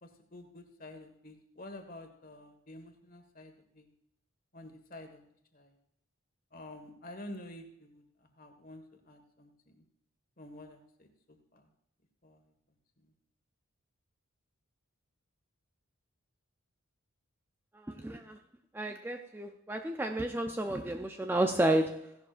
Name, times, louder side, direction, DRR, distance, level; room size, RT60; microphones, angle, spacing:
voice 1, 0.0-3.9 4.5-5.2 5.5-5.7 6.5-9.8 10.4-11.7 12.2-12.5 13.0-13.1, left 1 dB, 40° left, 5 dB, 1.6 m, -50 dB
voice 2, 17.8-18.4 18.7-22.2, right 1 dB, 10° right, 5 dB, 0.4 m, -31 dB
16.0 x 11.5 x 2.5 m, 0.76 s
head